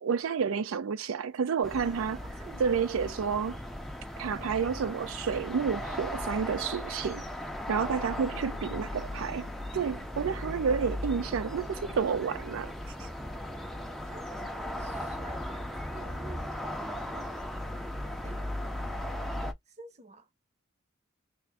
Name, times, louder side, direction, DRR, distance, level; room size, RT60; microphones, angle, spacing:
voice 1, 0.0-2.2 2.6-3.5 4.2-7.3 7.7-12.7 13.0-13.1, right 6 dB, 85° right, 0.4 m, -30 dB
sound 1, 1.6-19.5, left 1 dB, ahead, 0.4 m, -37 dB
voice 2, 2.2-3.4 7.8-9.1 10.2-10.5 14.0-17.4 18.1-18.4 19.7-20.3, right 3 dB, 35° right, 0.7 m, -51 dB
3.4 x 2.5 x 3.4 m
head